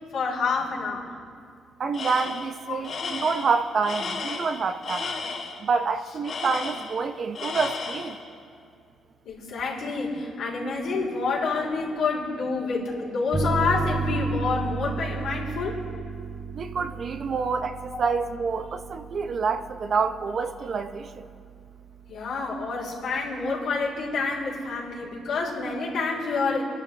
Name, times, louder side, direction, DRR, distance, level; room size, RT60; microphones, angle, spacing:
voice 1, 0.1-1.1 2.7-2.8 9.3-15.8 17.9-18.1 22.1-26.6, left 4 dB, 80° left, -5 dB, 4.0 m, -28 dB
voice 2, 1.8-5.1 5.6-8.2 16.5-21.1, right 5 dB, 50° right, 9 dB, 0.8 m, -27 dB
Tools, 1.9-2.5 2.8-5.6 6.2-7.1 7.3-8.2, left 4 dB, 55° left, 3.4 m, -33 dB
sound 1, 13.3-22.6, right 4 dB, 25° right, 1.0 m, -34 dB
25.5 x 11.5 x 3.4 m, 2.3 s
cardioid pair, 90°, 0 cm